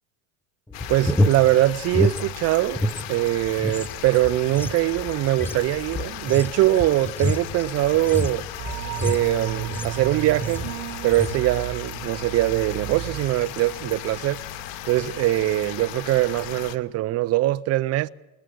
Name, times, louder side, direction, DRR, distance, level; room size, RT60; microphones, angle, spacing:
sound 1, 0.7-16.8, left 12 dB, 60° left, 1.2 m, -37 dB
sound 2, 0.7-3.1 3.4-10.1 10.4-10.8 11.1-11.4, left 1 dB, 5° left, 0.6 m, -28 dB
voice 1, 0.9-2.8 3.1-8.5 9.0-10.7 11.0-14.4 14.8-18.1, right 15 dB, 35° right, 0.7 m, -22 dB
sound 3, 8.6-14.6 14.9-15.0, right 13 dB, 55° right, 1.5 m, -34 dB
20.5 x 20.0 x 6.4 m
supercardioid pair, 120°, 42 cm